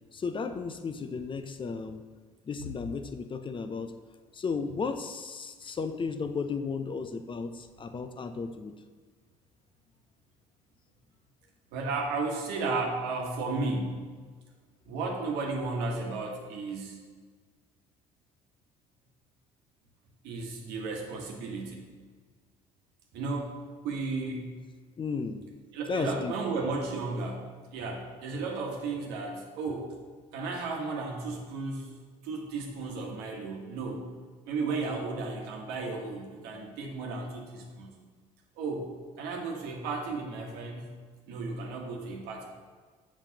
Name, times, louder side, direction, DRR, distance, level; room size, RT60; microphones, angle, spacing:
voice 1, 0.1-2.0 2.4-3.9 4.3-8.8 25.0-25.4 25.9-26.3, left 5 dB, 30° left, 9 dB, 0.5 m, -34 dB
voice 2, 11.7-14.1 14.8-17.0 20.2-21.8 23.1-23.6 23.8-24.5 25.7-29.9 30.3-31.9 32.2-34.1 34.5-38.0 38.6-41.0 41.3-42.5, right 3 dB, 75° right, 0 dB, 1.2 m, -34 dB
7.3 x 5.2 x 2.8 m, 1.5 s
hypercardioid pair, 65°, 17 cm